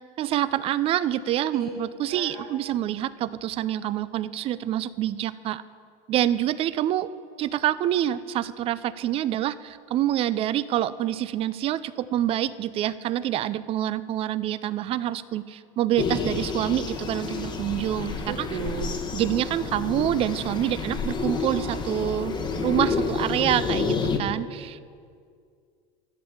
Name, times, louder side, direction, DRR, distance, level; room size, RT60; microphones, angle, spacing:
voice 1, 0.2-5.6 6.1-7.1 7.4-18.5 19.1-24.8, right 12 dB, 35° right, 16 dB, 0.4 m, -26 dB
voice 2, 2.1-2.5 18.2-18.9, right 8 dB, 65° right, -1 dB, 1.3 m, -34 dB
sound 1, 16.0-24.2, left 4 dB, 25° left, 1.0 m, -29 dB
11.5 x 7.1 x 7.3 m, 2.2 s
supercardioid pair, 140°, 17 cm